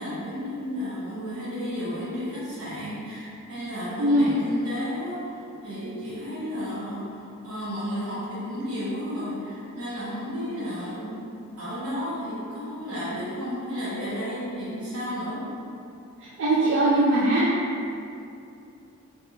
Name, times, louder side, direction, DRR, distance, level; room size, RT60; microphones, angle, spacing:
voice 1, 0.0-15.5, equal, 85° right, -10 dB, 1.3 m, -33 dB
voice 2, 16.4-17.5, right 1 dB, 55° right, -7 dB, 0.4 m, -20 dB
3.2 x 2.7 x 2.8 m, 2.6 s
head